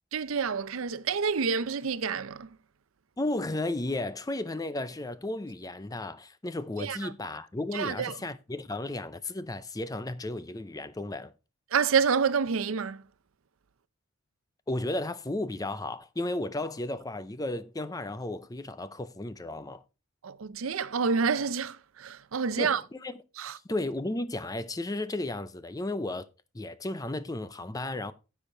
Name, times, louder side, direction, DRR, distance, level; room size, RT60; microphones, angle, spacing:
voice 1, 0.1-2.5 6.8-7.0 7.7-8.2 11.7-13.0 20.2-22.8 23.4-23.6, right 6 dB, 75° right, 0.6 m, -28 dB
voice 2, 3.2-11.3 14.7-19.8 22.6-23.1 23.7-26.3 26.5-28.1, left 2 dB, 15° left, 0.5 m, -34 dB
9.9 x 7.2 x 3.8 m
head